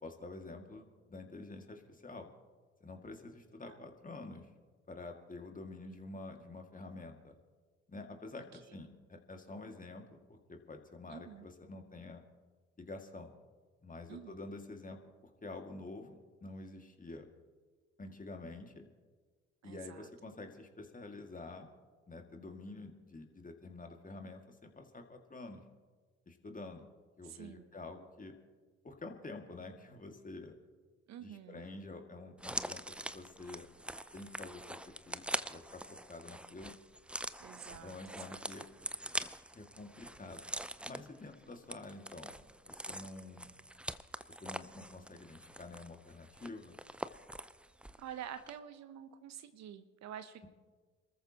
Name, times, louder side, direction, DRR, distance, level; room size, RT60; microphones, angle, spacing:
voice 1, 0.0-2.3 2.8-4.5 4.9-7.4 7.9-12.2 12.8-13.3 13.8-15.0 15.4-17.3 18.0-18.9 19.6-21.7 22.1-25.6 26.3-26.9 27.2-28.3 28.8-30.6 31.2-33.7 34.1-36.8 37.7-38.6 39.5-40.5 40.8-42.4 42.6-43.5 44.4-46.8, left 2 dB, 25° left, 4 dB, 2.2 m, -48 dB
voice 2, 11.1-11.5 14.1-14.4 19.6-20.1 27.2-27.7 31.1-31.7 37.4-38.4 48.0-50.5, right 10 dB, 60° right, 11 dB, 0.9 m, -48 dB
sound 1, 32.4-48.1 48.4-48.5, right 1 dB, 5° right, 0.5 m, -44 dB
27.5 x 14.0 x 3.0 m, 1.5 s
hypercardioid pair, 50°, 31 cm